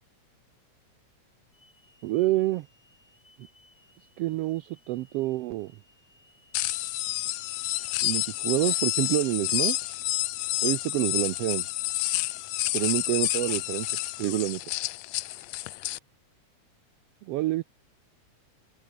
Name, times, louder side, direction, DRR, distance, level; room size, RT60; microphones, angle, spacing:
Hiss / Alarm, 1.5-9.2, left 1 dB, 15° left, 6.2 m, -62 dB
voice 1, 2.0-2.7 4.2-5.7 8.0-10.0 10.6-11.6 12.7-13.9 14.2-14.6 17.3-17.6, right 17 dB, 85° right, 1.3 m, -27 dB
sound 1, 6.5-16.0, left 18 dB, 75° left, 1.7 m, -29 dB
open air
omnidirectional pair, 3.4 m